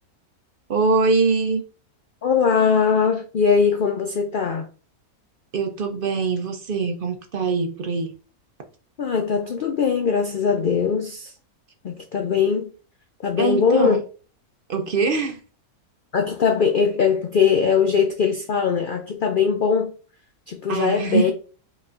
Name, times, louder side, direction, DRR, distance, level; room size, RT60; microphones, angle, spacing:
voice 1, 0.7-1.6 5.5-8.1 13.4-14.0 14.7-15.4 20.7-21.3, right 4 dB, 60° right, 0.6 m, -23 dB
voice 2, 2.2-4.7 9.0-11.3 11.8-12.7 13.2-14.0 16.1-19.9 20.5-21.3, left 6 dB, 75° left, 0.4 m, -21 dB
5.5 x 3.1 x 2.5 m
omnidirectional pair, 1.6 m